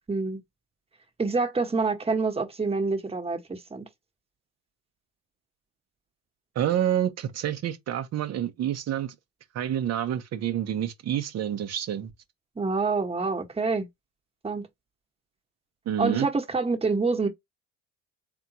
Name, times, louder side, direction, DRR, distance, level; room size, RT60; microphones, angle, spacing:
voice 1, 0.1-0.4 1.2-3.9 12.6-13.9 14.4-14.6 16.0-17.3, right 4 dB, 20° right, 1.3 m, -27 dB
voice 2, 6.5-9.1 9.5-12.1 15.9-16.3, right 10 dB, 55° right, 1.0 m, -28 dB
3.8 x 3.6 x 2.8 m
supercardioid pair, 80°, 30 cm